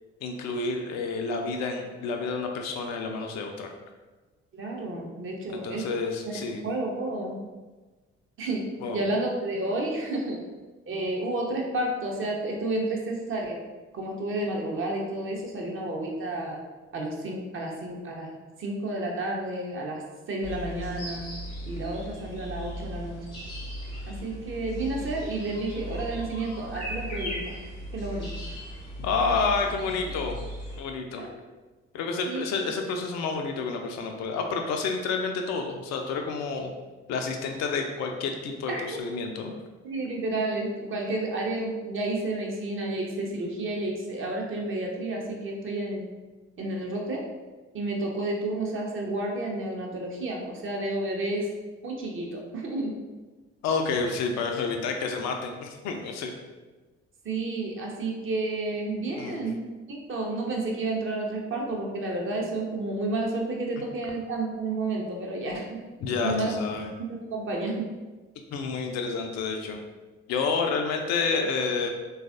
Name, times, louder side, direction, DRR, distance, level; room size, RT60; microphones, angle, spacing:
voice 1, 0.2-3.7 5.5-6.6 8.8-9.0 29.0-30.4 30.8-31.3 31.9-36.7 37.1-39.5 53.6-56.3 59.2-59.4 66.0-66.9 68.5-69.8 70.3-71.9, left 4 dB, 50° left, 3 dB, 0.4 m, -29 dB
voice 2, 4.5-5.8 6.3-6.4 6.6-7.3 8.4-8.6 8.9-10.4 10.9-13.6 13.9-16.6 16.9-18.3 18.6-20.0 20.3-21.2 21.7-23.2 24.1-27.5 27.9-28.3 31.2-31.3 32.2-32.4 38.7-38.8 39.8-46.1 46.6-47.2 47.7-51.5 51.8-52.9 57.2-59.6 59.9-65.8 66.2-66.5 67.1-67.8, right 2 dB, 35° right, 0 dB, 0.7 m, -31 dB
sound 1, 20.4-30.8, equal, 90° left, 0.7 m, -37 dB
3.3 x 2.3 x 2.4 m, 1.2 s
figure-of-eight pair, 45°, 34 cm